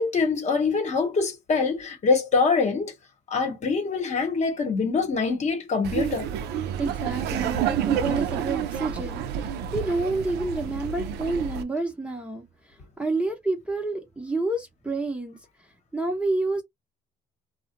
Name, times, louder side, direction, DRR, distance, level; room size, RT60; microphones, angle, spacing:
voice 1, 0.0-2.9 3.3-6.3, left 4 dB, 45° left, 1.1 m, -24 dB
Laughter, 5.8-11.6, right 9 dB, 75° right, 0.4 m, -29 dB
voice 2, 6.8-12.4 13.0-15.4 15.9-16.6, right 2 dB, 5° right, 0.8 m, -29 dB
2.4 x 2.1 x 2.7 m
cardioid pair, 110°, 17 cm